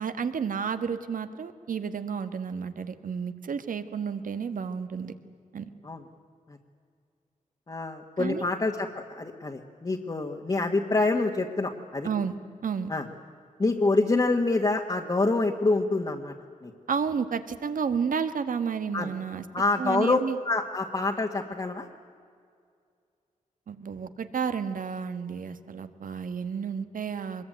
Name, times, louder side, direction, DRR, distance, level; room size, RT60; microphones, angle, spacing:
voice 1, 0.0-5.1 5.5-5.7 8.2-8.4 12.0-12.3 12.6-12.9 16.9-19.4 19.8-20.4 23.7-27.5, right 6 dB, 80° right, 10 dB, 1.5 m, -31 dB
voice 2, 7.7-12.1 12.9-13.1 13.6-16.3 16.6-16.7 18.9-19.1 19.5-20.2 20.4-21.9, left 3 dB, 30° left, 0 dB, 1.7 m, -26 dB
24.5 x 21.5 x 9.2 m, 2.2 s
wide cardioid pair, 95°, 14 cm